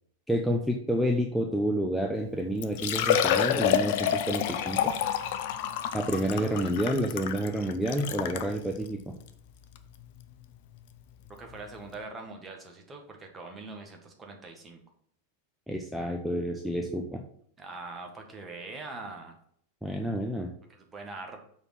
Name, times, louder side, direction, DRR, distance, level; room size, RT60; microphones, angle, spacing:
voice 1, 0.3-4.9 5.9-9.1 15.7-17.2 19.8-20.5, equal, ahead, 2 dB, 0.7 m, -29 dB
Liquid, 2.2-2.3 2.6-8.5 9.2-9.3 9.8-9.9 11.5-11.6 11.8-11.9, left 9 dB, 50° left, 0.6 m, -28 dB
voice 2, 11.3-14.8 17.6-19.4 20.7-21.4, right 3 dB, 15° right, 2 dB, 1.7 m, -43 dB
6.7 x 4.4 x 5.8 m, 0.64 s
figure-of-eight pair, 90°, 0 cm